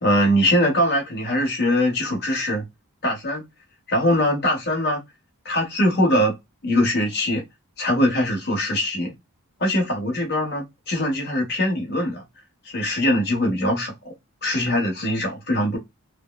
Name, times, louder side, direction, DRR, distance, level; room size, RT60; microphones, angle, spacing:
voice 1, 0.0-2.7 3.0-3.4 3.9-5.0 5.4-6.3 6.6-7.4 7.8-9.1 9.6-12.2 12.6-14.1 14.4-15.8, left 1 dB, 50° left, 1.2 m, -22 dB
4.7 x 2.1 x 2.2 m
head